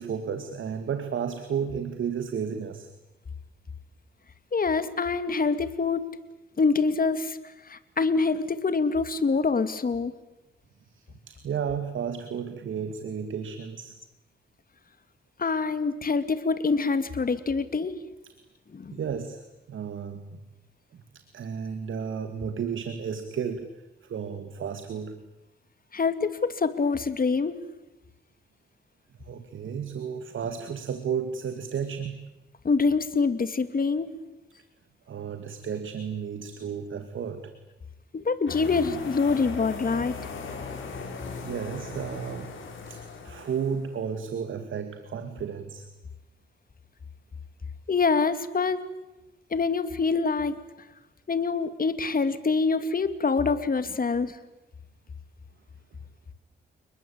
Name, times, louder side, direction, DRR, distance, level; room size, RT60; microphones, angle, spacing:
voice 1, 0.0-2.9 10.9-13.9 18.2-18.3 18.9-20.4 20.9-25.2 29.2-32.2 35.1-37.5 41.4-42.6 42.9-45.9, right 7 dB, 75° right, 9 dB, 2.3 m, -33 dB
voice 2, 4.5-6.1 6.6-7.4 7.7-10.1 15.4-18.0 18.7-19.0 25.9-27.6 32.6-34.1 38.1-40.2 47.9-48.8 49.5-50.6 51.3-54.4, left 4 dB, 45° left, 11 dB, 2.6 m, -25 dB
sound 1, 38.5-44.0, left 4 dB, 75° left, 6.6 m, -38 dB
30.0 x 21.0 x 8.8 m, 1.0 s
cardioid pair, 75°, 20 cm